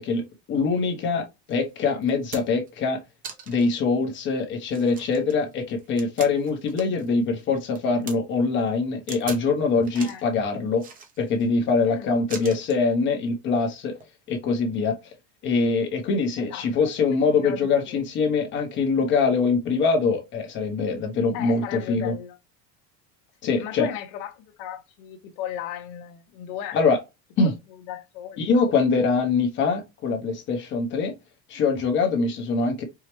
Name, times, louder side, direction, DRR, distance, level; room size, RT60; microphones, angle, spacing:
voice 1, 0.0-3.0 3.5-10.8 11.2-14.0 14.3-15.0 15.4-22.1 23.4-23.9 26.7-27.0 27.4-27.5 28.4-31.1 31.5-32.8, left 4 dB, 30° left, 0.7 m, -23 dB
sound 1, 1.5-1.6 2.0-2.7 3.2-3.7 4.2-4.3 4.7-7.1 7.4-8.2 9.1-9.5 9.8-10.3 10.8-11.5 12.3-12.8 13.9-14.1, right 5 dB, 25° right, 0.5 m, -40 dB
voice 2, 9.9-10.2 11.9-12.5 16.4-18.0 21.3-22.4 23.4-26.8 27.4-28.4, left 10 dB, 60° left, 0.9 m, -37 dB
4.6 x 2.1 x 2.9 m
cardioid pair, 175°, 36 cm